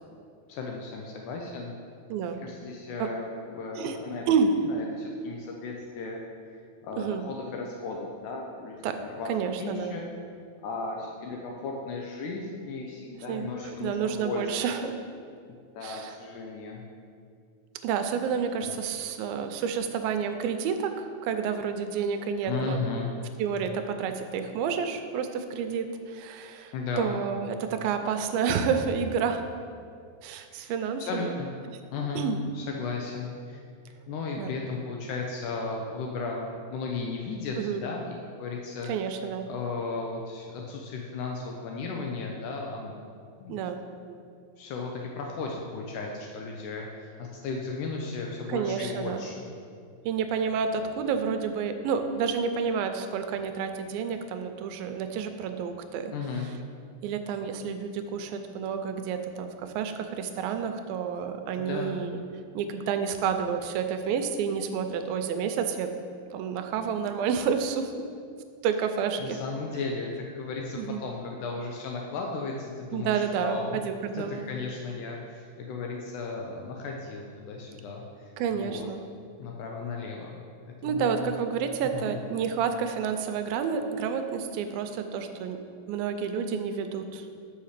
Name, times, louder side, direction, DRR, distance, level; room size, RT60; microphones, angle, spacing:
voice 1, 0.5-1.7 2.3-4.2 4.6-6.2 6.8-9.3 9.6-10.1 10.6-14.7 15.5-16.8 18.6-18.8 22.4-23.1 26.7-27.1 30.5-30.7 31.0-31.5 31.9-32.3 32.6-33.6 34.1-38.9 39.5-42.9 43.4-43.6 44.6-49.3 56.1-56.5 61.6-62.0 69.2-73.8 74.1-78.9 79.4-80.4 80.8-81.3 81.9-82.2, left 4 dB, 80° left, 0 dB, 1.8 m, -35 dB
voice 2, 2.1-2.4 3.0-3.1 3.8-4.0 4.3-4.5 7.0-7.3 8.8-9.0 9.3-10.0 13.3-14.9 15.8-16.2 17.8-22.8 23.4-29.4 30.2-31.3 31.6-31.7 32.2-32.4 34.4-34.6 37.6-37.8 38.8-39.5 43.5-43.8 48.5-49.3 50.1-56.1 57.0-62.2 62.5-65.9 66.3-68.1 68.6-69.4 70.7-71.0 72.9-74.5 78.4-79.0 80.8-85.6 85.9-87.3, right 6 dB, 85° right, 7 dB, 2.3 m, -29 dB
5.7 x 5.6 x 6.5 m, 2.3 s
omnidirectional pair, 4.2 m